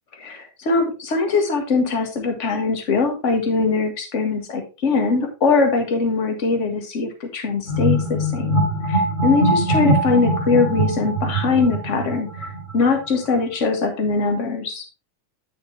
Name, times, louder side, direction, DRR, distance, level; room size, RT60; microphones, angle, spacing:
voice 1, 0.2-14.8, left 4 dB, 35° left, 4 dB, 1.3 m, -22 dB
sound 1, 7.7-12.9, right 1 dB, 15° left, 2.6 m, -22 dB
9.3 x 6.7 x 3.3 m, 0.30 s
omnidirectional pair, 3.5 m